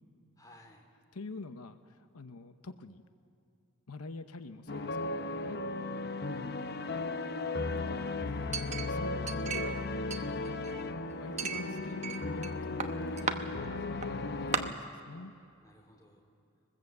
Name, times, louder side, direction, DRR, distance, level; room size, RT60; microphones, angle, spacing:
voice 1, 0.4-0.9 5.4-6.2 15.6-16.3, equal, 15° left, 2 dB, 3.2 m, -58 dB
voice 2, 1.1-3.0 3.9-5.6 6.2-6.6 7.7-10.1 11.1-15.3, left 3 dB, 90° left, 9 dB, 0.9 m, -46 dB
sound 1, 4.7-14.7, left 3 dB, 45° left, 0.8 m, -36 dB
Chink clink, 8.5-9.8 10.1-10.9 11.4-12.5 12.8-13.4 14.0-14.1 14.5-14.6, right 5 dB, 30° right, 1.0 m, -35 dB
23.0 x 20.5 x 8.0 m, 2.6 s
head